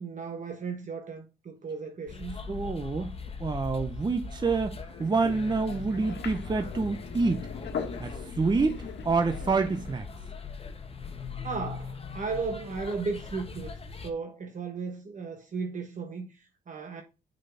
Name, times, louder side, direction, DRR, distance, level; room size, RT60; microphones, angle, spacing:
voice 1, 0.0-2.4 11.4-13.7 14.0-17.0, right 4 dB, 40° right, 1.2 m, -35 dB
sound 1, 2.1-14.1, left 5 dB, 30° left, 1.2 m, -40 dB
voice 2, 2.5-3.1 3.4-7.5 8.0-10.1, right 4 dB, 20° right, 0.7 m, -27 dB
sound 2, 4.9-10.0, left 6 dB, 60° left, 1.5 m, -40 dB
6.3 x 4.2 x 5.6 m
cardioid pair, 90°, 20 cm